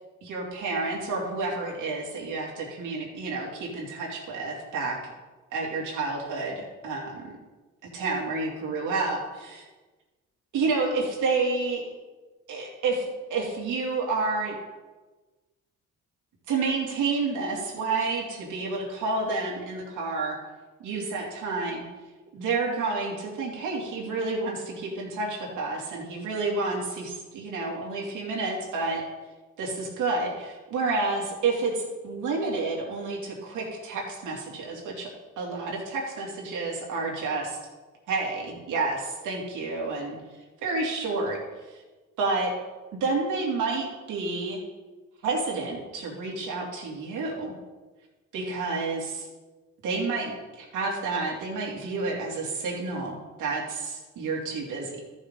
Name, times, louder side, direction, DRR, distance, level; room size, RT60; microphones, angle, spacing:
voice 1, 0.2-5.0 5.5-7.3 7.9-9.6 10.5-11.8 12.5-14.5 16.5-20.4 20.8-21.8 22.3-29.0 29.6-35.1 35.4-37.6 38.1-40.2 40.6-41.4 41.7-41.8 42.2-42.5 43.0-44.6 45.2-47.5 48.3-49.3 49.8-55.0, right 3 dB, 85° right, -2 dB, 2.8 m, -29 dB
14.0 x 6.5 x 3.9 m, 1.2 s
cardioid pair, 90°, 30 cm